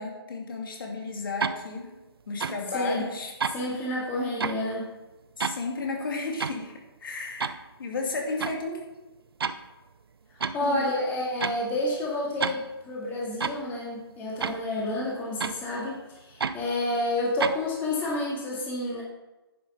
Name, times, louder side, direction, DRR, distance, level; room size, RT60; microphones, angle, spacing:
voice 1, 0.0-2.0 2.3-3.3 5.4-8.8 10.6-10.8, left 3 dB, 55° left, 1 dB, 2.5 m, -33 dB
sound 1, 1.4-1.6 2.4-2.6 3.4-3.6 4.4-4.6 5.4-5.6 6.4-6.6 7.4-7.6 8.4-8.6 9.4-9.6 10.4-10.6 11.4-11.6 12.4-12.6 13.4-13.6 14.4-14.6 15.4-15.6 16.4-16.6 17.4-17.6, right 5 dB, 65° right, 0.7 m, -29 dB
voice 2, 2.7-3.1 3.5-4.9 10.3-19.0, left 1 dB, 15° left, -4 dB, 2.4 m, -29 dB
10.5 x 7.1 x 5.7 m, 1.1 s
figure-of-eight pair, 145°, 14 cm